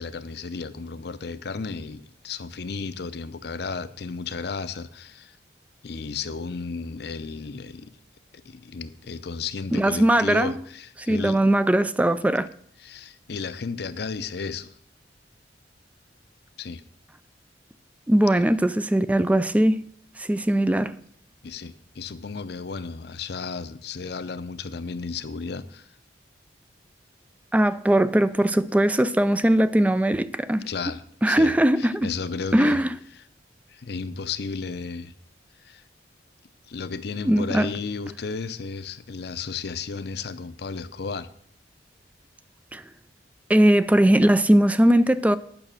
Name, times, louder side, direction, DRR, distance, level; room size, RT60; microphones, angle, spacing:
voice 1, 0.0-5.4 5.8-7.9 8.4-11.4 12.8-14.7 16.6-16.8 18.4-18.5 21.4-25.9 30.6-32.8 33.7-35.1 35.6-35.8 36.7-41.3, left 4 dB, 60° left, 0.6 m, -33 dB
voice 2, 9.7-10.5 11.1-12.5 18.1-19.8 20.2-21.0 27.5-30.7 31.2-32.1 32.5-32.9 37.2-37.7 42.7-42.8 43.5-45.4, right 1 dB, 10° right, 0.3 m, -20 dB
9.0 x 5.9 x 7.4 m
head